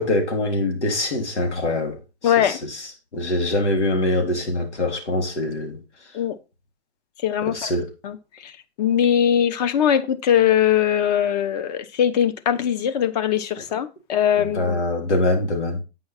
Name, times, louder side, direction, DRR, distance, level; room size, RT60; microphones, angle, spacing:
voice 1, 0.0-5.8 7.4-7.9 14.4-15.8, left 1 dB, 90° left, 3.5 m, -24 dB
voice 2, 2.2-2.6 6.1-6.3 7.2-7.6 8.0-8.2 8.4-8.5 8.8-14.8, left 9 dB, 35° left, 1.1 m, -21 dB
9.1 x 5.6 x 4.4 m
hypercardioid pair, 145°, 34 cm